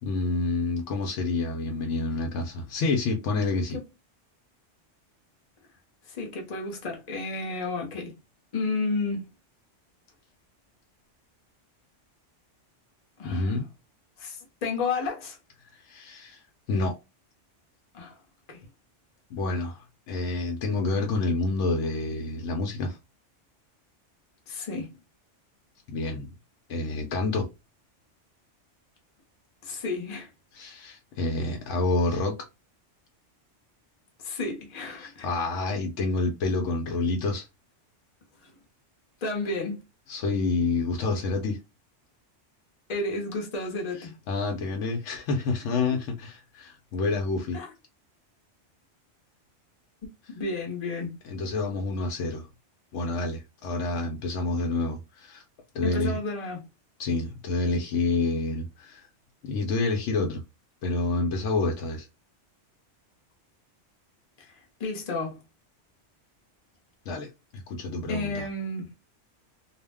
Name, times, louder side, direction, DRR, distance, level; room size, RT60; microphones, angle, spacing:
voice 1, 0.0-3.8 13.2-13.7 15.6-16.4 16.7-17.0 19.3-23.0 25.9-26.3 26.7-27.5 30.5-32.4 35.0-37.5 40.1-41.6 44.0-47.6 51.2-52.5 52.9-55.4 55.7-56.2 57.0-59.1 59.4-60.4 60.8-62.1 67.1-68.5, left 3 dB, 85° left, 0.9 m, -28 dB
voice 2, 6.1-8.2 8.5-9.2 13.2-13.5 14.2-15.4 17.9-18.2 18.5-18.6 24.5-24.9 29.6-30.3 34.2-35.3 38.4-38.5 39.2-39.8 42.9-44.2 47.5-47.7 50.3-51.2 55.8-56.6 64.4-65.3 68.1-68.9, left 3 dB, 40° left, 0.8 m, -32 dB
2.4 x 2.1 x 3.3 m
omnidirectional pair, 1.2 m